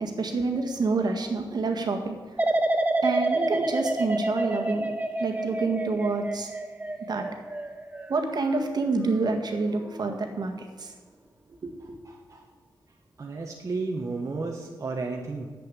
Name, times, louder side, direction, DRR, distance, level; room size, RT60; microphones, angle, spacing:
voice 1, 0.0-2.2 3.0-4.9 5.2-6.5 7.1-7.3 8.1-10.5 10.8-10.9 11.6-11.7, right 3 dB, 60° right, 4 dB, 1.7 m, -27 dB
sound 1, 2.4-9.3 9.7-10.2, right 2 dB, 20° right, 0.9 m, -29 dB
voice 2, 12.0-12.4 13.2-15.5, right 3 dB, 40° right, 0 dB, 1.3 m, -33 dB
10.5 x 7.9 x 8.2 m, 1.5 s
wide cardioid pair, 125°, 8 cm